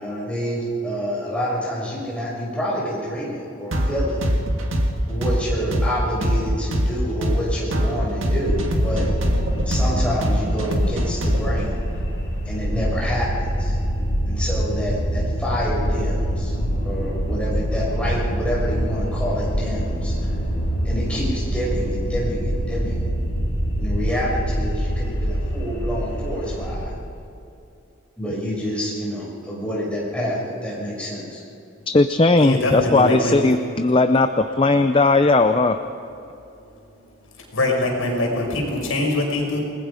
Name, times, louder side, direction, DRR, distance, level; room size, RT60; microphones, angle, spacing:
voice 1, 0.0-4.2 5.1-9.1 9.6-11.8 12.4-13.7 14.3-16.5 16.8-20.3 20.8-23.1 23.8-26.9 28.2-31.4, equal, 5° left, -6 dB, 6.5 m, -28 dB
sound 1, 3.7-11.6, equal, 70° right, 2.1 m, -22 dB
sound 2, 8.4-26.8, equal, 55° left, 5.0 m, -25 dB
voice 2, 31.9-35.8, left 3 dB, 25° left, 8 dB, 0.5 m, -17 dB
voice 3, 32.4-33.5 37.5-39.6, left 1 dB, 75° left, -1 dB, 5.8 m, -23 dB
28.5 x 20.0 x 5.1 m, 2.7 s
head